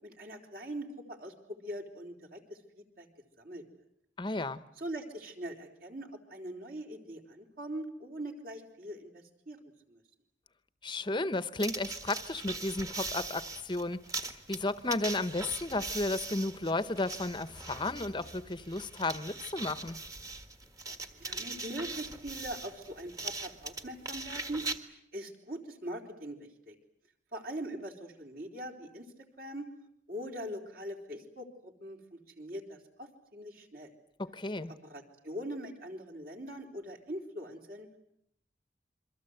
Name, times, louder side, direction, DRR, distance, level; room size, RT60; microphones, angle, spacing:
voice 1, 0.0-1.3 1.6-3.1 3.4-3.6 4.8-10.0 21.1-26.7 27.3-29.7 30.1-33.9 34.8-37.9, right 1 dB, 55° right, 3.9 m, -42 dB
voice 2, 4.2-4.6 10.8-20.0 34.2-34.7, left 2 dB, 25° left, 1.0 m, -33 dB
sound 1, 11.6-24.8, right 3 dB, 20° right, 1.6 m, -41 dB
28.0 x 23.5 x 8.0 m
head